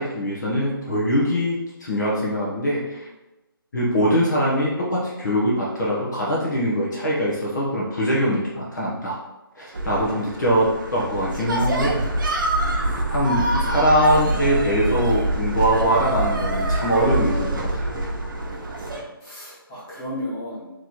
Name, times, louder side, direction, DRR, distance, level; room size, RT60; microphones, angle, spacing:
voice 1, 0.0-3.1 3.7-9.2 9.6-12.1 13.1-18.0, equal, 50° left, -5 dB, 1.1 m, -22 dB
sound 1, 9.7-19.0, right 1 dB, 60° right, 0.9 m, -25 dB
voice 2, 12.6-13.4 18.4-20.7, left 1 dB, 20° left, -10 dB, 1.4 m, -37 dB
3.2 x 3.1 x 4.1 m, 1.0 s
hypercardioid pair, 165°, 12 cm